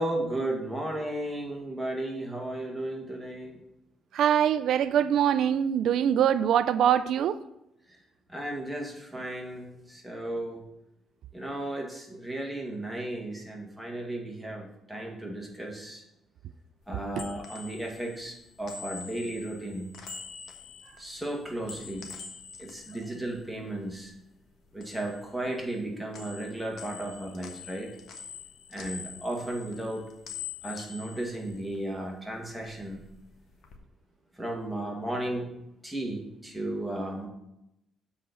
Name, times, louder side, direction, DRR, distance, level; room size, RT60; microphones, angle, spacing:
voice 1, 0.0-3.6 8.3-10.6 11.3-16.0 16.9-20.0 21.0-22.2 22.6-24.1 24.7-27.9 28.7-30.1 30.6-33.0 34.3-35.5 35.8-37.3, right 1 dB, ahead, 2.2 m, -34 dB
voice 2, 4.1-7.4 17.2-17.3, right 9 dB, 75° right, 0.4 m, -23 dB
sound 1, 16.8-24.2 24.5-25.9 26.1-32.1 32.4-33.8, left 6 dB, 70° left, 1.3 m, -45 dB
7.3 x 4.4 x 6.9 m
cardioid pair, 90°, 0 cm